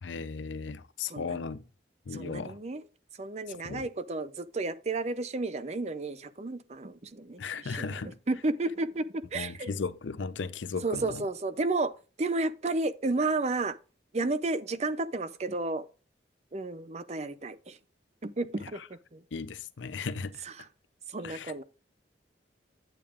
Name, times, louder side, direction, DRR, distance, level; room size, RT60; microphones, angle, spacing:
voice 1, 0.0-1.6 2.1-2.6 3.5-3.9 7.4-8.2 9.3-11.3 18.7-18.9 19.3-20.4 21.2-21.5, left 4 dB, 85° left, 0.6 m, -36 dB
voice 2, 1.0-1.4 2.1-2.8 3.2-7.9 8.3-9.7 10.8-13.8 14.1-15.9 16.5-17.8 18.2-19.2 20.4-20.5 21.1-21.6, right 2 dB, 35° right, 0.5 m, -32 dB
9.0 x 8.6 x 2.5 m
head